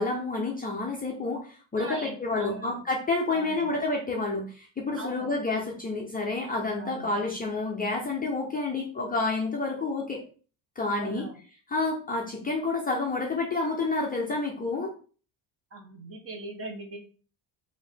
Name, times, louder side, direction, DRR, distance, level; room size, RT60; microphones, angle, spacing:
voice 1, 0.0-10.2 10.8-11.3 11.7-14.9, left 3 dB, 20° left, -1 dB, 0.5 m, -29 dB
voice 2, 1.8-2.8 3.3-3.7 5.0-5.3 6.8-7.1 10.9-11.4 15.7-17.0, right 2 dB, 30° right, 3 dB, 0.8 m, -40 dB
4.5 x 2.6 x 3.4 m, 0.39 s
cardioid pair, 170°, 46 cm